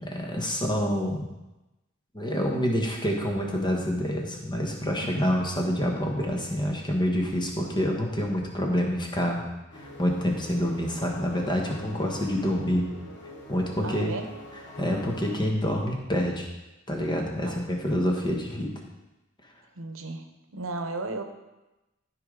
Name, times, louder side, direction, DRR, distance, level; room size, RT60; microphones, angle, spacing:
voice 1, 0.2-1.2 2.1-9.4 9.7-12.9 13.5-14.1 14.7-16.5 16.9-18.7, equal, 20° left, 0 dB, 1.4 m, -27 dB
sound 1, 9.7-15.4, left 1 dB, 60° left, 1.7 m, -44 dB
voice 2, 13.8-14.3 17.4-17.7 19.8-20.2 20.5-21.2, right 2 dB, 70° right, 6 dB, 0.9 m, -35 dB
13.5 x 4.9 x 3.9 m, 1.0 s
head